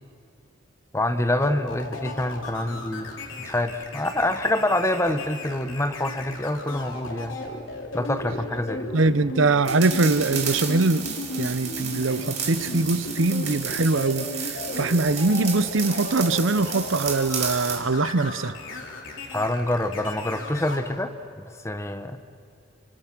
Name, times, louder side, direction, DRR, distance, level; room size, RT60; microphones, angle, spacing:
voice 1, 0.9-3.1 3.4-7.4 7.9-8.9 19.3-22.2, left 1 dB, 15° left, 1.1 m, -26 dB
sound 1, 1.4-20.8, left 2 dB, 80° left, 3.6 m, -36 dB
voice 2, 8.9-11.1 11.4-18.5, right 3 dB, 80° right, 0.8 m, -22 dB
sound 2, 9.6-17.8, right 6 dB, 35° right, 2.8 m, -33 dB
28.5 x 26.0 x 6.2 m
head